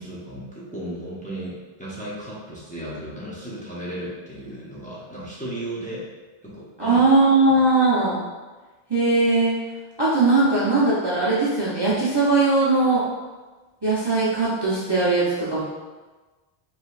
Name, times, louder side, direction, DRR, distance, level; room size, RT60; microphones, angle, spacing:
voice 1, 0.0-6.1 6.4-7.0 7.4-7.6, right 1 dB, 10° left, -7 dB, 0.8 m, -35 dB
voice 2, 6.8-8.2 8.9-9.6 10.0-13.0 13.8-15.6, right 3 dB, 25° right, -9 dB, 0.7 m, -19 dB
5.1 x 3.3 x 2.5 m, 1.3 s
omnidirectional pair, 1.1 m